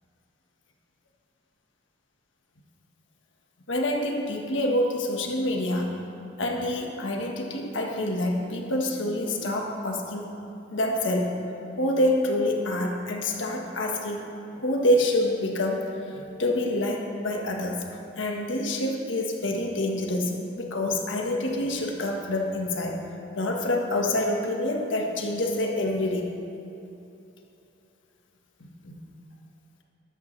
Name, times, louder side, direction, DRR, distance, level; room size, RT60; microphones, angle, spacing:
voice 1, 3.7-6.0 6.4-10.3 10.7-11.4 11.8-14.3 14.5-15.8 16.1-23.0 23.3-26.3 28.6-29.0, left 1 dB, 75° left, 1 dB, 1.4 m, -27 dB
13.0 x 13.0 x 3.3 m, 2.8 s
head